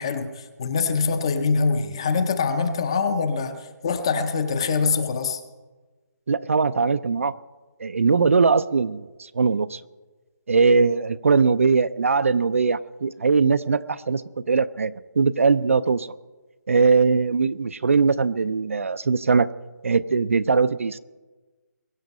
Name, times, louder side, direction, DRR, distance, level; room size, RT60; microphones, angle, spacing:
voice 1, 0.0-5.4, left 5 dB, 15° left, 10 dB, 0.6 m, -24 dB
voice 2, 6.3-7.3 7.8-9.8 10.5-14.2 14.5-16.1 16.7-19.5 19.8-21.0, right 4 dB, 50° right, 15 dB, 0.4 m, -20 dB
22.0 x 8.0 x 5.3 m, 1.3 s
hypercardioid pair, 175°, 10 cm